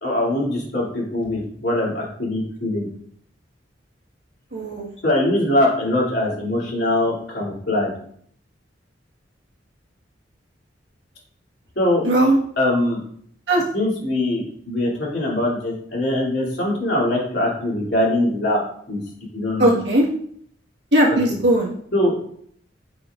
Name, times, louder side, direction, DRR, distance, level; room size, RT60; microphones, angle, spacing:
voice 1, 0.0-2.9 5.0-7.9 11.8-12.0 12.6-13.0 13.7-18.6 18.9-19.0 19.3-19.8 21.1-21.4 21.9-22.2, left 1 dB, 65° left, -4 dB, 2.7 m, -22 dB
voice 2, 4.5-4.9 12.0-12.4 13.5-13.6 19.6-20.1 20.9-21.7, right 1 dB, 70° right, -2 dB, 1.6 m, -18 dB
8.6 x 5.0 x 2.5 m, 0.63 s
head